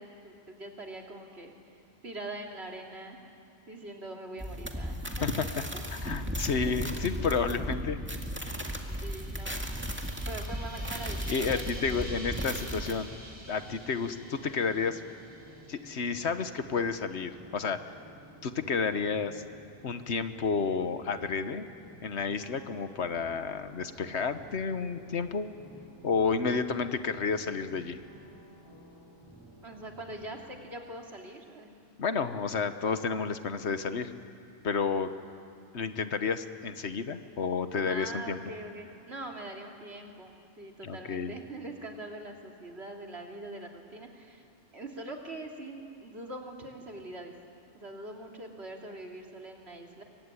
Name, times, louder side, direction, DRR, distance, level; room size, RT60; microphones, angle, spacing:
voice 1, 0.0-1.5 2.0-3.2 3.7-5.4 5.7-5.8 8.8-9.7 10.2-12.0 29.6-31.7 37.9-44.4 44.7-47.3 47.7-50.0, right 2 dB, 70° right, 1 dB, 3.2 m, -43 dB
sound 1, 4.4-12.9, equal, 10° right, 2.1 m, -35 dB
voice 2, 5.9-8.0 11.3-13.1 13.5-15.0 15.7-17.8 18.4-19.4 19.8-21.7 22.0-25.5 26.0-28.0 32.0-34.1 34.6-35.1 35.7-38.4 40.8-41.3, left 5 dB, 80° left, 10 dB, 1.4 m, -31 dB
sound 2, 7.9-16.2, right 1 dB, 55° right, 5.5 m, -49 dB
sound 3, 11.4-30.5, right 1 dB, 20° left, 6.6 m, -53 dB
24.5 x 23.5 x 9.8 m, 2.4 s
omnidirectional pair, 1.1 m